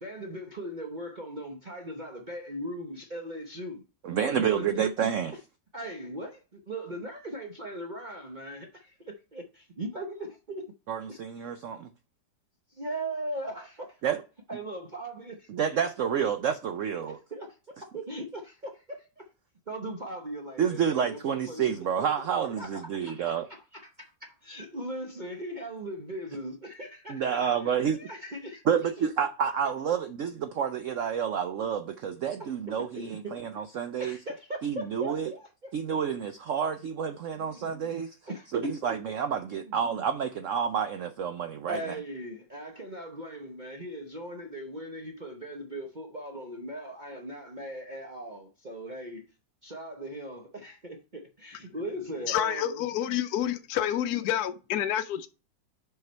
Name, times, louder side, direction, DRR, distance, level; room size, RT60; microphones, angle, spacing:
voice 1, 0.0-3.8 4.2-4.6 5.7-10.6 12.7-14.0 14.5-15.5 17.3-19.2 19.7-21.6 22.6-28.6 29.0-29.1 33.0-33.6 34.0-35.7 37.4-37.7 38.3-38.7 39.5-39.8 41.7-49.2 49.6-52.8, right 1 dB, 45° right, 0.6 m, -39 dB
voice 2, 4.0-5.3 10.9-11.9 14.0-14.2 15.5-17.2 20.6-23.5 27.1-28.0 28.7-34.2 34.6-35.3 35.7-38.1 38.5-41.8, right 7 dB, 85° right, 0.6 m, -29 dB
voice 3, 52.3-55.3, left 11 dB, 70° left, 1.0 m, -28 dB
5.7 x 5.6 x 4.4 m
omnidirectional pair, 2.0 m